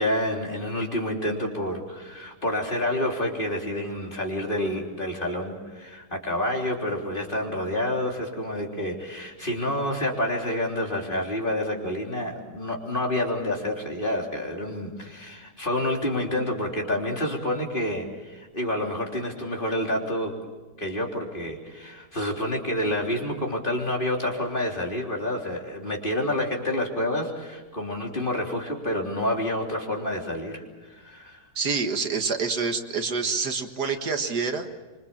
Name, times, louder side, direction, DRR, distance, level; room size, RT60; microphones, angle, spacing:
voice 1, 0.0-20.3 20.8-30.6 30.9-31.4, left 1 dB, 30° left, 0 dB, 3.7 m, -28 dB
voice 2, 31.6-34.7, right 4 dB, 70° right, 6 dB, 2.1 m, -27 dB
26.0 x 24.5 x 7.4 m, 1.3 s
omnidirectional pair, 1.8 m